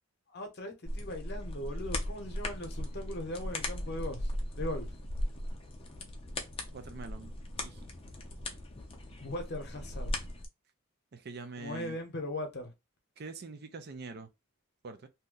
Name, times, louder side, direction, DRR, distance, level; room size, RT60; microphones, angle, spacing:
voice 1, 0.3-4.3 4.6-4.9 9.2-10.1 11.6-12.7, left 1 dB, 50° left, 0.8 m, -39 dB
sound 1, 0.9-10.5, left 1 dB, 25° left, 0.5 m, -38 dB
voice 2, 6.7-7.3 7.6-7.8 11.1-12.0 13.2-14.3 14.8-15.1, right 3 dB, 50° right, 0.5 m, -44 dB
2.8 x 2.1 x 3.7 m
head